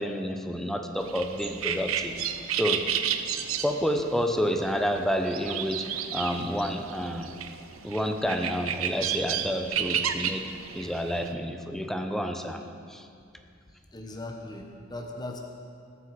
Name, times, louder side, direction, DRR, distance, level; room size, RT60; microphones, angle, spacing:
voice 1, 0.0-2.1 2.6-2.9 3.6-7.3 7.8-12.6 12.9-13.1, equal, ahead, 5 dB, 0.7 m, -29 dB
sound 1, 1.0-11.3, right 8 dB, 85° right, 0.7 m, -32 dB
voice 2, 13.9-15.4, left 2 dB, 20° left, 2 dB, 1.0 m, -38 dB
20.5 x 8.4 x 4.8 m, 2.4 s
head